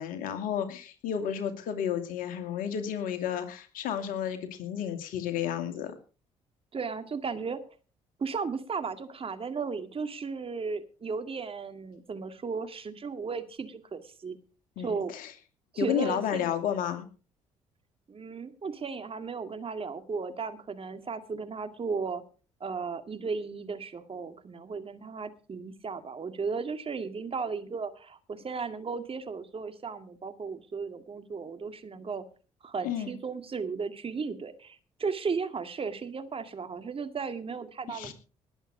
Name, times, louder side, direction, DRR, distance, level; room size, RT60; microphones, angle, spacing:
voice 1, 0.0-6.0 14.8-15.3 15.8-17.1 32.8-33.1 37.9-38.1, left 9 dB, 70° left, 8 dB, 2.4 m, -32 dB
voice 2, 6.7-7.6 8.2-14.4 14.8-15.1 15.7-16.5 18.1-22.2 22.6-32.3 32.6-38.1, right 5 dB, 40° right, 9 dB, 2.1 m, -35 dB
19.5 x 8.1 x 5.0 m, 0.36 s
hypercardioid pair, 50°, 15 cm